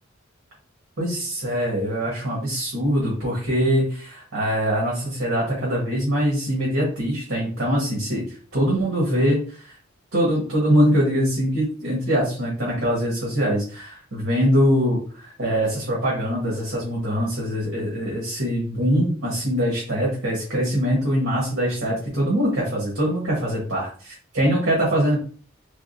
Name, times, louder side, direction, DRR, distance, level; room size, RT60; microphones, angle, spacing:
voice 1, 1.0-8.2 8.5-9.8 10.1-25.2, equal, 65° right, -5 dB, 1.4 m, -23 dB
3.5 x 3.4 x 2.6 m, 0.43 s
head